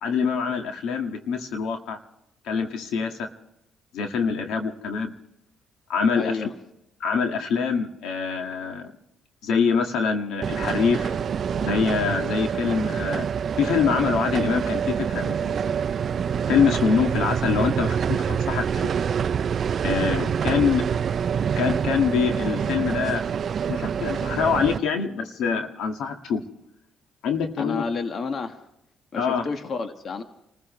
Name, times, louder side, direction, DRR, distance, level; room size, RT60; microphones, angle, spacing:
voice 1, 0.0-2.0 2.4-3.3 3.9-5.1 5.9-6.3 7.0-8.9 9.4-11.2 11.5-13.3 13.6-15.7 16.5-18.9 19.8-20.8 21.6-23.2 23.7-26.4 27.2-27.8 29.2-29.4, left 6 dB, 75° left, 4 dB, 1.8 m, -25 dB
voice 2, 6.2-6.5 20.5-20.6 27.6-28.7 29.1-30.2, left 4 dB, 50° left, 6 dB, 1.6 m, -30 dB
sound 1, 10.4-24.8, right 7 dB, 50° right, 0.5 m, -26 dB
28.5 x 15.0 x 3.2 m, 0.85 s
cardioid pair, 80°, 0 cm